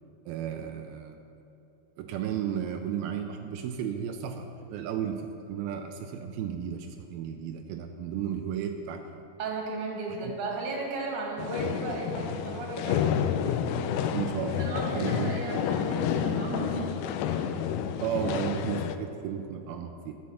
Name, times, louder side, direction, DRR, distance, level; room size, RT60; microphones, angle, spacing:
voice 1, 0.3-1.2 2.0-9.0 10.2-10.3 14.1-15.3 18.0-20.2, right 9 dB, 85° right, 4 dB, 2.2 m, -34 dB
voice 2, 9.4-13.1 14.5-16.9 17.4-17.5, right 3 dB, 55° right, -2 dB, 3.1 m, -35 dB
sound 1, 11.4-19.0, left 8 dB, 80° left, 2.3 m, -29 dB
12.0 x 7.6 x 7.0 m, 2.9 s
omnidirectional pair, 4.9 m